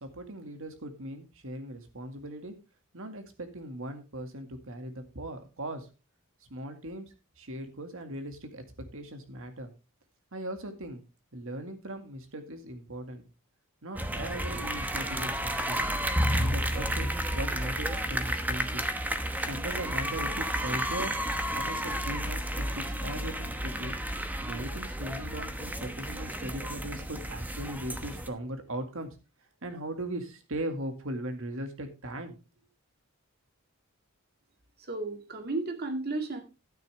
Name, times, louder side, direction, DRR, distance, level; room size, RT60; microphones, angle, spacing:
voice 1, 0.0-2.5 2.9-5.9 6.5-9.7 10.3-11.0 11.3-13.3 13.8-15.8 16.4-18.8 19.4-21.2 21.5-24.0 24.4-29.1 29.6-32.4, right 1 dB, 65° right, 6 dB, 2.0 m, -39 dB
sound 1, 13.9-28.3, equal, 10° right, 1.0 m, -32 dB
voice 2, 34.9-36.4, right 2 dB, 50° right, 5 dB, 2.1 m, -33 dB
11.5 x 9.8 x 3.4 m, 0.30 s
head